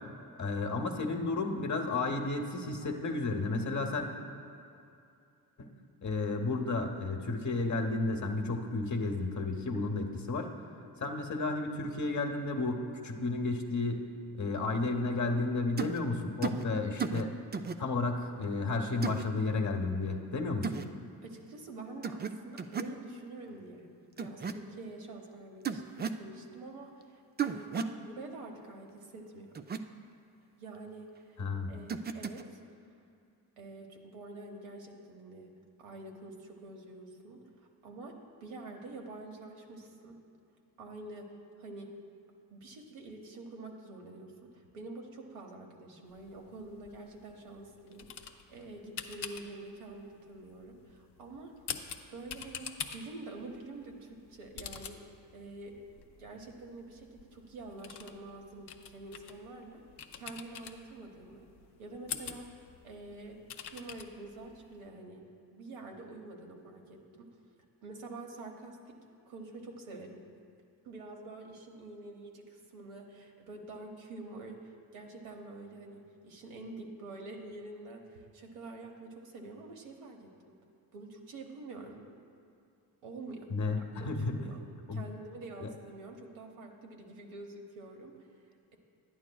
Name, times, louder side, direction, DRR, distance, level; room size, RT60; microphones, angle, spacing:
voice 1, 0.4-4.1 5.6-5.7 6.0-10.5 11.0-14.0 14.3-17.3 17.8-20.7 31.4-31.7 83.5-84.4 84.9-85.0 85.6-85.7, left 3 dB, 35° left, 3 dB, 1.0 m, -32 dB
sound 1, 15.8-16.0 16.4-16.6 17.0-17.2 17.5-17.8 19.0-19.2 20.6-20.9 22.0-22.3 22.6-22.9 24.2-24.5 25.7-26.2 27.4-28.0 29.6-29.8 31.9-32.4, right 6 dB, 25° right, 0.3 m, -34 dB
voice 2, 21.2-23.9 24.2-29.6 30.6-31.4 31.7-32.6 33.6-40.2 40.8-42.0 42.5-51.7 52.1-52.7 52.9-55.8 56.2-59.8 60.1-61.5 61.8-65.2 65.5-67.3 67.8-69.0 69.3-70.3 70.8-80.6 80.9-82.1 83.0-83.5 83.7-84.7 84.9-88.4, right 2 dB, 70° right, 1 dB, 1.3 m, -47 dB
sound 2, 46.1-64.9, left 7 dB, 55° left, 0.7 m, -47 dB
11.0 x 9.3 x 2.3 m, 2.6 s
hypercardioid pair, 45°, 50 cm